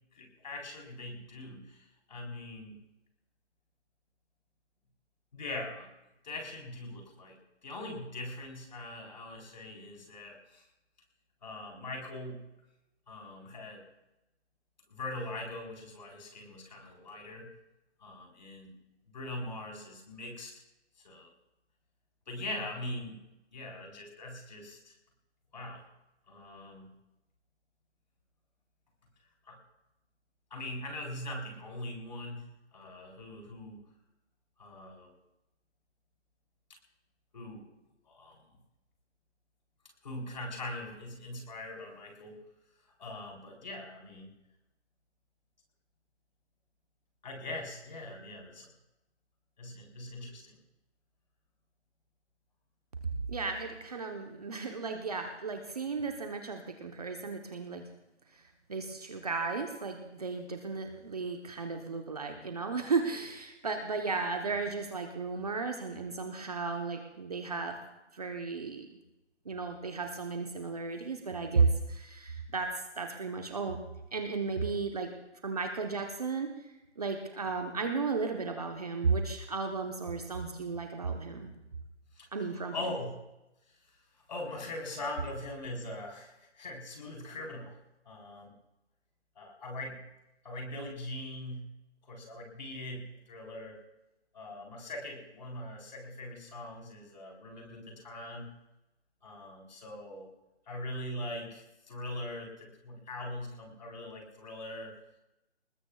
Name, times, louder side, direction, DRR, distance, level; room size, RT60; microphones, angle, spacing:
voice 1, 0.1-2.8 5.3-5.9 6.2-7.4 7.6-10.6 11.4-12.4 13.1-13.8 14.9-17.5 18.0-18.8 19.1-20.5 21.0-21.3 22.3-23.2 23.5-24.9 25.5-25.8 26.3-26.9 29.5-29.6 30.5-33.8 34.6-35.1 37.3-37.7 38.1-38.4 40.0-42.4 42.9-44.3 47.2-48.7 49.6-50.6 82.1-82.5 82.7-83.2 84.3-87.8 88.0-88.5 89.4-90.0 90.4-91.7 92.0-93.8 94.3-98.5 99.2-100.3 100.7-104.9, left 1 dB, 40° left, 0 dB, 4.2 m, -41 dB
voice 2, 53.3-57.8 58.3-58.4 58.7-67.8 68.1-68.9 69.4-72.7 73.0-73.8 74.1-75.1 75.4-76.5 77.0-81.5 82.3-82.7, right 4 dB, 35° right, 4 dB, 1.1 m, -34 dB
26.0 x 20.0 x 2.4 m, 0.94 s
hypercardioid pair, 170°, 35 cm